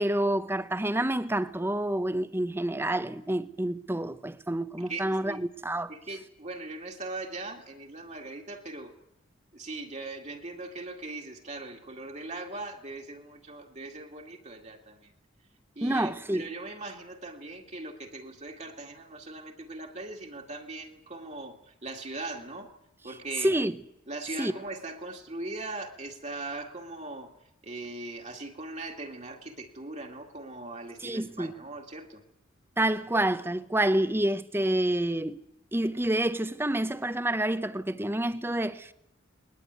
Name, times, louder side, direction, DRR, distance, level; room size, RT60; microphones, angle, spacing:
voice 1, 0.0-5.9 15.8-16.5 23.4-23.8 24.4-24.5 31.0-31.5 32.8-35.4 35.7-38.9, right 1 dB, 10° right, 0.9 m, -28 dB
voice 2, 4.9-5.4 5.9-8.9 9.5-15.1 15.8-22.7 23.0-23.5 24.1-27.3 27.6-32.2, right 2 dB, 35° right, 2.1 m, -40 dB
20.5 x 20.0 x 9.4 m
head